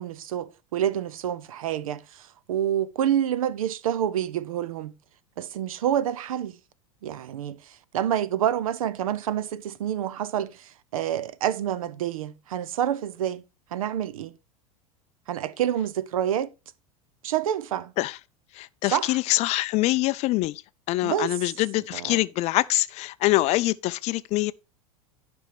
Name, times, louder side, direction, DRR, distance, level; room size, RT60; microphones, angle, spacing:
voice 1, 0.0-4.9 5.4-6.6 7.0-13.4 13.7-14.4 15.3-16.5 17.2-17.9 18.9-19.2 21.0-21.3 21.9-22.2, right 10 dB, 65° right, 0.7 m, -28 dB
voice 2, 18.5-20.6 20.9-24.5, left 18 dB, 35° left, 0.4 m, -24 dB
11.0 x 5.3 x 4.6 m
figure-of-eight pair, 80°, 19 cm